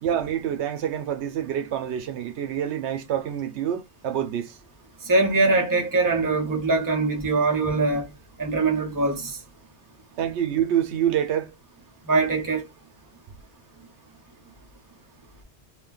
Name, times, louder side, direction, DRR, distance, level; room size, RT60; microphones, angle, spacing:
voice 1, 0.0-4.5 10.2-11.5, right 10 dB, 80° right, 0.8 m, -27 dB
voice 2, 5.1-8.1 8.4-9.4 12.1-12.6, right 3 dB, 20° right, 0.7 m, -22 dB
2.5 x 2.2 x 3.7 m
omnidirectional pair, 1.1 m